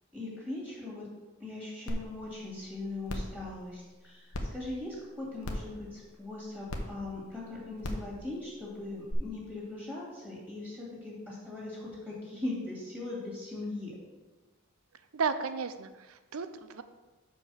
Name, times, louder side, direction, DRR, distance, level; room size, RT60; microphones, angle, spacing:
voice 1, 0.1-1.0 1.4-13.9, left 2 dB, 5° right, -6 dB, 2.4 m, -40 dB
sound 1, 1.9-2.0 2.4-2.5 3.1-3.3 4.3-4.4 5.4-5.7 6.7-6.8 7.8-8.0 9.1-9.2, left 1 dB, 85° left, 1.0 m, -35 dB
voice 2, 15.1-16.8, right 5 dB, 75° right, 11 dB, 0.6 m, -34 dB
5.7 x 5.3 x 6.4 m, 1.2 s
head